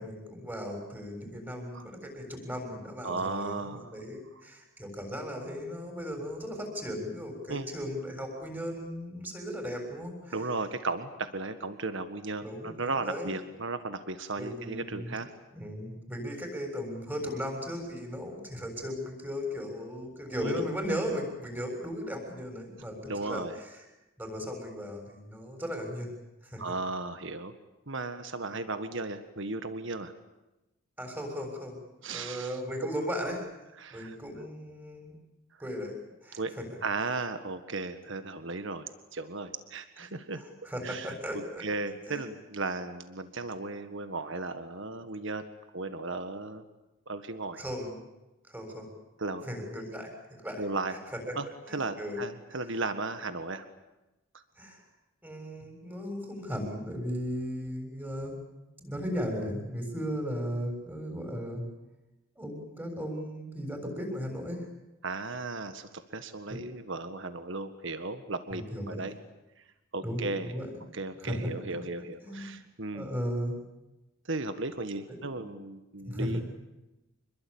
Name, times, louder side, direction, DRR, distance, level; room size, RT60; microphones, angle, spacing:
voice 1, 0.0-10.4 12.4-13.3 14.4-15.2 15.5-23.8 24.2-26.2 26.4-26.6 31.0-33.4 33.9-35.2 35.6-36.0 36.2-36.7 40.4-41.6 42.1-42.3 47.5-48.0 48.5-48.9 49.5-50.1 50.4-50.6 50.9-51.4 51.7-52.2 52.5-52.6 54.6-54.8 55.2-58.4 58.8-61.6 62.4-64.7 66.5-66.6 68.5-69.1 70.0-70.7 71.2-71.8 72.2-72.6 72.9-73.6 75.4-75.5 76.1-76.4, equal, 10° right, 3 dB, 7.1 m, -36 dB
voice 2, 3.0-3.9 7.5-7.7 10.3-15.3 20.4-20.6 23.1-23.5 26.6-27.5 27.9-30.1 32.0-32.6 33.8-34.2 36.3-36.6 36.8-40.4 40.8-45.5 45.7-46.6 47.1-47.6 49.2-49.5 50.6-51.0 51.4-53.7 54.3-54.4 65.0-69.1 69.9-70.5 70.9-73.1 74.3-76.4, right 3 dB, 60° right, 9 dB, 1.7 m, -35 dB
27.0 x 22.0 x 8.9 m, 1.0 s
head